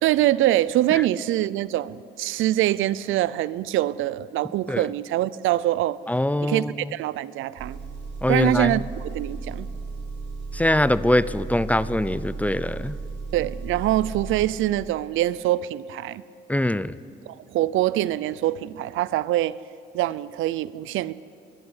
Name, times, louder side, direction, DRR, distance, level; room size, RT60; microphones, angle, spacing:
voice 1, 0.0-6.0 6.4-6.6 6.9-7.8 8.3-9.7 13.3-16.2 17.3-19.6 19.9-21.1, right 14 dB, 85° right, 19 dB, 0.6 m, -24 dB
voice 2, 6.1-6.9 8.2-8.8 10.5-12.9 16.5-17.0, left 1 dB, 5° left, 17 dB, 0.6 m, -23 dB
Engine, 7.6-14.5, right 3 dB, 60° right, 5.9 m, -35 dB
23.0 x 12.0 x 9.8 m, 2.5 s
cardioid pair, 90°, 20 cm